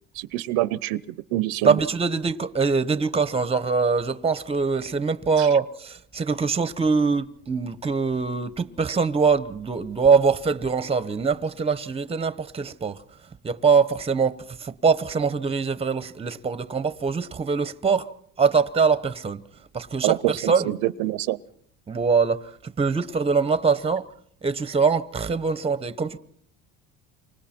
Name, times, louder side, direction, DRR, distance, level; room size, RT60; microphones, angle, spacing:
voice 1, 0.2-1.0 1.3-1.8 20.0-21.4, right 16 dB, 85° right, 0.8 m, -25 dB
voice 2, 1.6-13.0 13.4-18.1 18.4-19.4 19.7-20.7 21.9-24.1 24.4-26.2, right 5 dB, 15° right, 1.0 m, -23 dB
29.0 x 25.0 x 4.4 m
cardioid pair, 125°, 34 cm